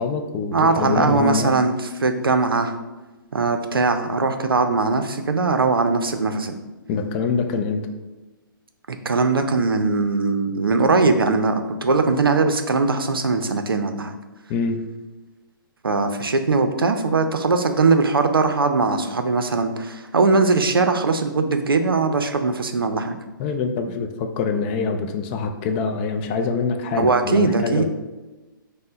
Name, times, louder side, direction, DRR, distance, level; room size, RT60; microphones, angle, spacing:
voice 1, 0.0-1.6 6.9-7.8 14.5-14.8 23.4-27.8, left 5 dB, 25° left, 5 dB, 0.4 m, -25 dB
voice 2, 0.5-1.7 2.0-2.7 3.3-6.6 8.9-14.2 15.8-23.2 27.0-27.8, right 3 dB, 80° right, 7 dB, 0.5 m, -20 dB
5.3 x 2.1 x 3.8 m, 1.1 s
figure-of-eight pair, 125°, 12 cm